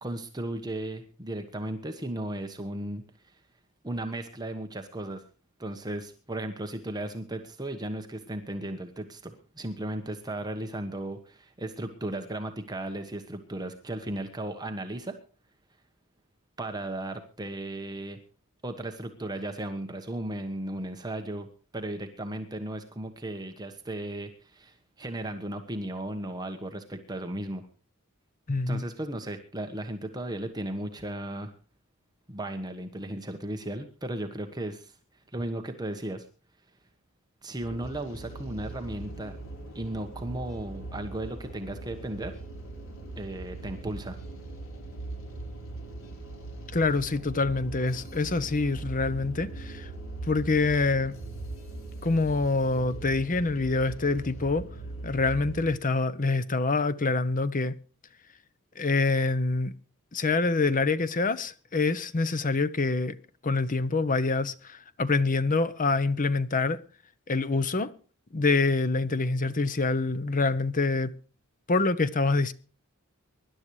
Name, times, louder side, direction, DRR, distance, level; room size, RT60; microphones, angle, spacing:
voice 1, 0.0-3.4 3.8-5.2 5.6-15.2 16.6-18.2 18.6-21.5 21.7-27.7 28.7-31.5 32.3-35.0 35.3-36.3 37.4-39.4 39.7-42.3 43.2-44.2, right 1 dB, 20° right, 1.2 m, -35 dB
voice 2, 28.5-28.8 46.7-49.9 50.3-51.2 52.0-54.6 55.0-57.8 58.8-59.7 60.1-63.2 63.4-66.8 67.3-67.9 68.3-71.1 71.7-72.5, left 3 dB, 40° left, 0.8 m, -26 dB
sound 1, 37.6-55.7, right 2 dB, 65° left, 3.7 m, -40 dB
24.0 x 11.5 x 3.2 m
head